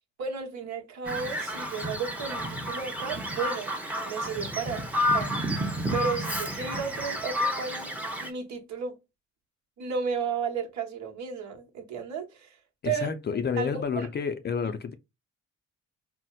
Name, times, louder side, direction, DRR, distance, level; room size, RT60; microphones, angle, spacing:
voice 1, 0.2-3.7 4.0-5.3 5.9-9.0 9.8-12.6 12.8-13.1 13.6-14.1, right 6 dB, 65° right, 1.0 m, -33 dB
Bird vocalization bird call bird song, 1.0-8.3, equal, 5° right, 0.7 m, -30 dB
voice 2, 12.8-14.9, left 6 dB, 35° left, 0.4 m, -30 dB
4.1 x 2.0 x 2.3 m
cardioid pair, 90°, 30 cm